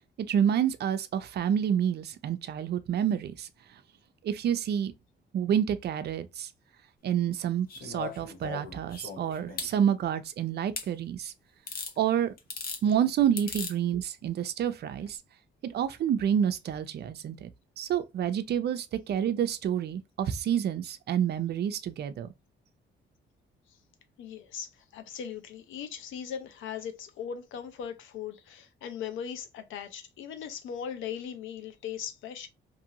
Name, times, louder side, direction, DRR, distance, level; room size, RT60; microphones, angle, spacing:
voice 1, 0.3-3.5 4.2-4.9 5.3-6.5 7.0-11.3 12.0-12.3 12.8-15.2 15.6-17.5 17.8-22.3, right 9 dB, 55° right, 0.5 m, -28 dB
sound 1, 7.7-9.7 10.8-10.9 11.7-11.9 12.4-12.8 13.4-13.7 15.0-15.1, left 5 dB, 50° left, 0.9 m, -38 dB
voice 2, 24.2-32.5, left 8 dB, 85° left, 0.6 m, -39 dB
2.6 x 2.5 x 2.8 m
cardioid pair, 90°, 20 cm